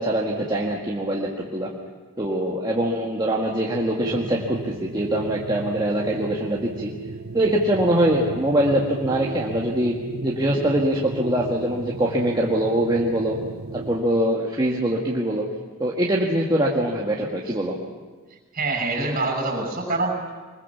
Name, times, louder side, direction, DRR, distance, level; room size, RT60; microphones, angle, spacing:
voice 1, 0.0-1.7 2.2-6.9 7.3-10.0 10.2-13.4 13.7-15.5 15.8-17.7, right 1 dB, 20° right, -3 dB, 1.8 m, -23 dB
sound 1, 3.9-14.1, right 3 dB, 75° right, 0.9 m, -36 dB
voice 2, 18.5-20.3, right 3 dB, 40° right, 2 dB, 6.6 m, -25 dB
24.5 x 21.5 x 7.2 m, 1.4 s
head